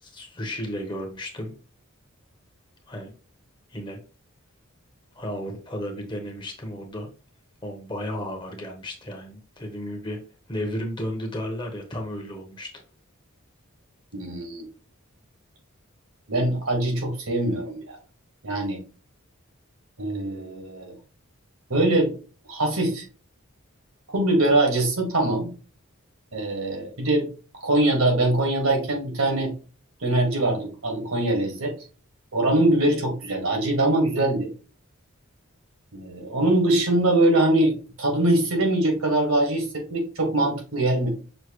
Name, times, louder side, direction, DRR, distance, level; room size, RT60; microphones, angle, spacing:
voice 1, 0.0-1.5 2.9-3.1 3.7-4.0 5.1-7.1 7.6-10.2 10.5-12.7, equal, 20° left, 3 dB, 0.9 m, -33 dB
voice 2, 14.1-14.6 16.3-18.0 18.4-18.8 20.0-20.9 21.7-22.1 22.5-23.0 24.1-25.5 26.3-27.3 27.6-29.5 30.0-31.7 32.3-34.5 35.9-41.1, right 1 dB, 75° right, 2 dB, 1.7 m, -23 dB
6.2 x 2.8 x 3.0 m, 0.36 s
head